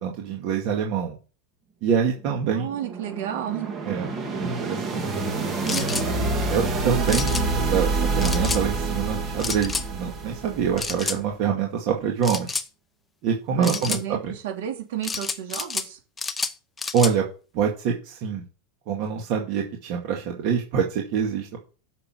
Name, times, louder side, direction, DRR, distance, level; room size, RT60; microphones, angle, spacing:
voice 1, 0.0-1.2 1.8-2.7 3.9-4.1 4.4-5.0 5.7-5.9 6.5-12.5 13.2-14.0 14.2-14.3 16.9-17.2 17.5-18.4 18.9-21.6, right 7 dB, 45° right, 1 dB, 2.1 m, -25 dB
sound 1, 2.2-11.1, right 3 dB, 20° right, 1.9 m, -27 dB
voice 2, 2.5-3.7 13.5-16.0, right 10 dB, 70° right, 2 dB, 4.0 m, -32 dB
sound 2, 5.7-6.1 7.1-7.4 8.2-8.6 9.4-9.9 10.8-11.2 12.2-12.7 13.6-14.0 15.0-15.9 16.2-17.1, left 4 dB, 10° left, 0.7 m, -29 dB
9.5 x 6.8 x 6.0 m, 0.34 s
supercardioid pair, 160°, 0 cm